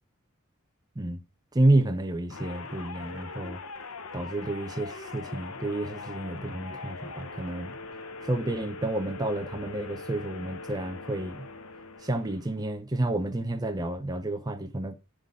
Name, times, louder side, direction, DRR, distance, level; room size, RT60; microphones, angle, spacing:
voice 1, 1.5-3.6 4.1-7.8 8.2-11.5 12.0-14.9, right 1 dB, 20° right, 0.6 m, -29 dB
sound 1, 2.3-12.7, left 3 dB, 90° left, 1.0 m, -42 dB
11.0 x 3.8 x 3.6 m
head